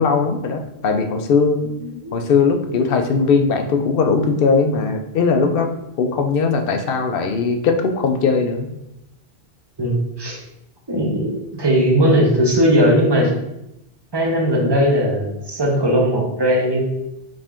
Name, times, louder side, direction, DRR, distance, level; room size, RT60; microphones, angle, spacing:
voice 1, 0.0-1.6 2.1-5.7 6.0-8.7, left 5 dB, 65° left, 4 dB, 0.7 m, -19 dB
voice 2, 1.8-2.1 9.8-10.4 10.9-13.3 14.1-16.8, equal, 25° right, -1 dB, 0.8 m, -18 dB
5.1 x 2.6 x 3.5 m, 0.85 s
omnidirectional pair, 1.0 m